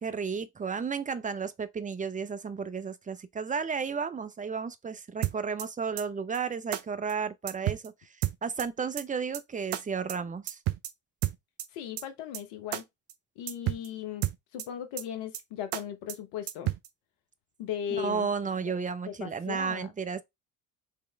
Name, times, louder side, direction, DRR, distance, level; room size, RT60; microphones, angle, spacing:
voice 1, 0.0-7.9 8.4-10.6 18.0-20.2, right 5 dB, 15° right, 0.6 m, -33 dB
sound 1, 5.2-5.7 6.0-6.1 6.3-6.4 6.7-6.8 7.1-7.2 7.5-7.9 8.2-8.7 9.0-9.1 9.3-9.4 9.7-9.8 10.1-10.2 10.5-10.9 11.2-11.7 12.0-12.1 12.3-12.4 12.7-12.8 13.1-13.2 13.5-13.9 14.2-14.7 15.0-15.1 15.3-15.4 15.7-15.8 16.1-16.2 16.5-16.9, right 15 dB, 60° right, 0.7 m, -31 dB
voice 2, 11.7-12.8 13.4-14.3 14.5-16.7 17.6-18.3 19.1-19.9, left 9 dB, 70° left, 0.9 m, -37 dB
4.7 x 3.1 x 3.3 m
hypercardioid pair, 55°, 45 cm